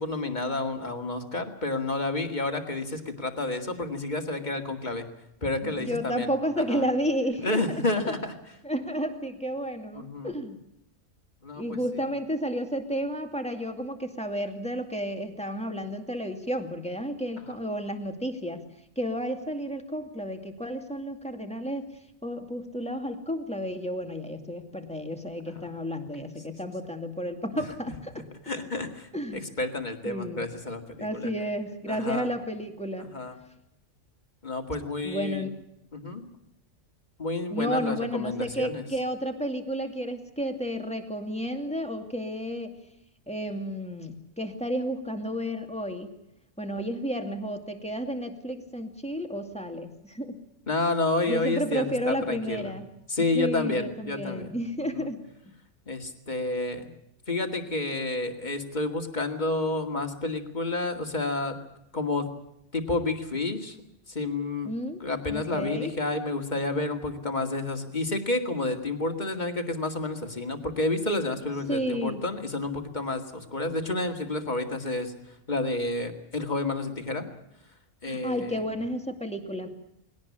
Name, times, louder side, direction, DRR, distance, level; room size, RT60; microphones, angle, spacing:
voice 1, 0.0-5.0 5.4-6.3 6.7-6.8 7.4-8.3 10.0-10.3 11.4-12.0 27.5-27.6 28.4-31.3 31.9-32.3 33.0-33.4 34.4-35.5 35.9-36.2 37.2-38.9 50.7-52.7 53.1-54.5 54.8-55.1 55.9-56.9 57.3-61.6 61.9-62.3 62.7-63.8 64.1-64.7 65.0-75.1 75.5-77.2 78.0-78.6, left 2 dB, 35° left, 5 dB, 2.4 m, -30 dB
voice 2, 5.6-8.2 8.6-10.6 11.5-18.7 19.0-21.9 22.2-28.3 29.1-29.5 30.1-30.5 31.0-33.1 35.0-35.6 37.5-42.8 43.3-46.1 46.6-50.4 51.3-52.9 53.3-55.2 64.6-65.0 65.3-65.9 71.7-72.2 78.1-79.7, equal, 5° left, 5 dB, 2.3 m, -32 dB
20.5 x 18.0 x 8.6 m, 0.78 s
omnidirectional pair, 1.3 m